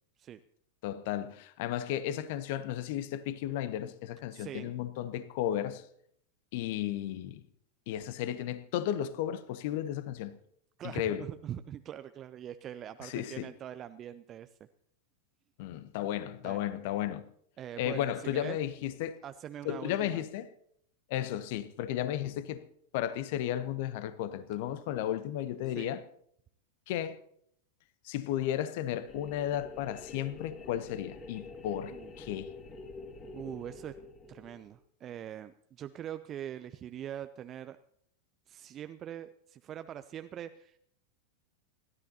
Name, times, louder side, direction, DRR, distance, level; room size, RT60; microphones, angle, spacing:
voice 1, 0.8-5.8 6.5-7.4 7.9-10.4 10.8-11.3 13.0-13.5 15.6-17.3 17.8-19.2 19.6-20.5 21.1-22.6 22.9-26.0 26.9-27.2 28.0-32.5, left 11 dB, 50° left, 0.9 m, -34 dB
voice 2, 4.3-4.7 10.8-14.5 16.4-16.6 17.6-18.6 19.2-20.2 25.8-26.0 31.9-32.1 33.3-33.9 34.3-37.8 38.5-40.8, right 10 dB, 30° right, 0.5 m, -43 dB
sound 1, 29.1-34.8, left 3 dB, 25° left, 2.6 m, -47 dB
27.5 x 13.0 x 2.8 m
figure-of-eight pair, 90°, 0 cm